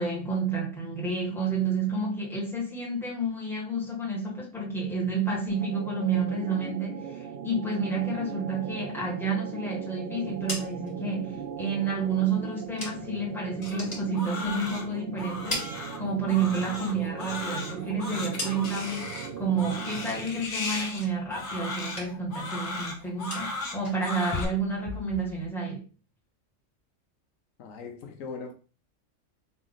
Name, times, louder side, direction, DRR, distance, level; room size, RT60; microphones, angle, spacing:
voice 1, 0.0-25.8, right 4 dB, ahead, 1.7 m, -30 dB
sound 1, 5.5-20.6, right 7 dB, 60° right, 0.6 m, -39 dB
sound 2, 10.2-13.3 13.6-14.9 15.2-16.5 16.9-19.0 19.4-19.9 20.2-21.5 21.8-22.4 22.6-25.5, left 2 dB, 30° left, 2.0 m, -40 dB
Crying sobbing, 13.6-24.4, left 3 dB, 60° left, 1.3 m, -37 dB
voice 2, 27.6-28.5, left 4 dB, 80° left, 1.1 m, -39 dB
4.0 x 3.1 x 3.9 m
omnidirectional pair, 1.4 m